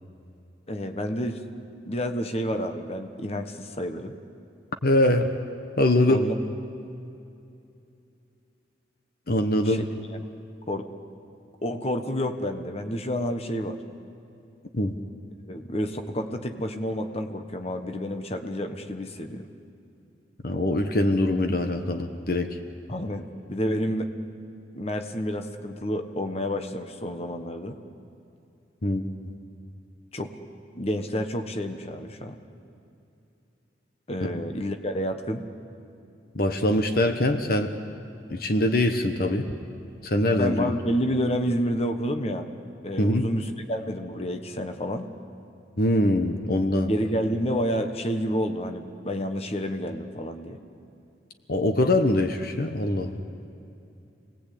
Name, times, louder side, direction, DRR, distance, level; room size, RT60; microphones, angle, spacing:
voice 1, 0.7-1.4 1.8-4.1 6.1-6.5 9.6-10.0 10.7-10.9 11.6-13.8 15.5-19.5 22.9-24.1 24.7-27.8 30.1-30.4 30.7-32.4 34.1-35.5 40.3-42.5 42.8-45.1 46.9-50.6, equal, 35° left, 6 dB, 1.3 m, -29 dB
voice 2, 4.8-5.3 5.8-6.2 9.3-9.8 14.7-14.9 20.4-22.6 28.8-29.1 34.2-34.3 36.3-37.7 38.3-39.4 40.0-40.7 43.0-43.3 45.8-46.9 51.5-53.2, left 1 dB, 55° left, 6 dB, 1.2 m, -23 dB
28.5 x 19.5 x 8.5 m, 2.6 s
head